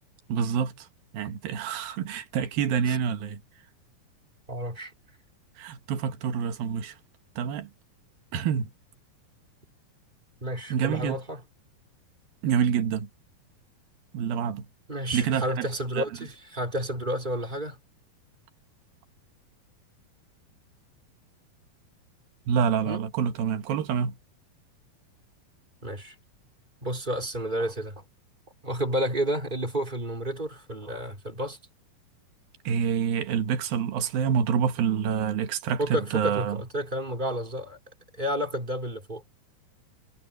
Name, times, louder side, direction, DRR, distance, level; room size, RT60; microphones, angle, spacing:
voice 1, 0.3-0.9 1.1-3.4 5.6-7.0 7.4-7.7 8.3-8.7 10.7-11.2 12.4-13.1 14.1-14.7 15.1-15.7 16.0-16.1 22.5-24.2 32.7-36.6, right 7 dB, 85° right, 3.3 m, -27 dB
voice 2, 4.5-4.9 10.4-11.4 14.9-17.8 22.8-23.0 25.8-26.2 26.8-28.0 28.6-31.6 35.8-37.8 38.2-39.2, equal, 10° right, 4.4 m, -31 dB
omnidirectional pair, 4.1 m